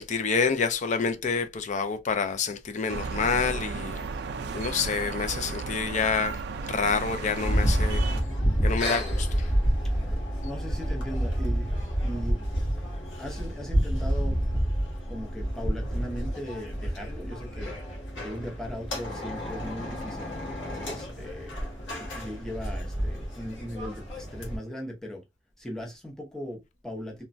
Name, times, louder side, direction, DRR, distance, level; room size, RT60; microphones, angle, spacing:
voice 1, 0.0-4.0 4.5-8.0 8.6-9.5, left 5 dB, 40° left, 0.4 m, -28 dB
sound 1, 2.9-8.2, right 4 dB, 60° right, 0.4 m, -34 dB
sound 2, 7.4-24.6, equal, 85° left, 1.2 m, -29 dB
voice 2, 10.4-11.7 12.0-12.4 13.2-14.4 15.1-17.8 18.2-20.4 20.7-21.6 22.0-25.2 25.6-27.2, equal, 5° left, 0.7 m, -38 dB
3.0 x 2.2 x 2.6 m
head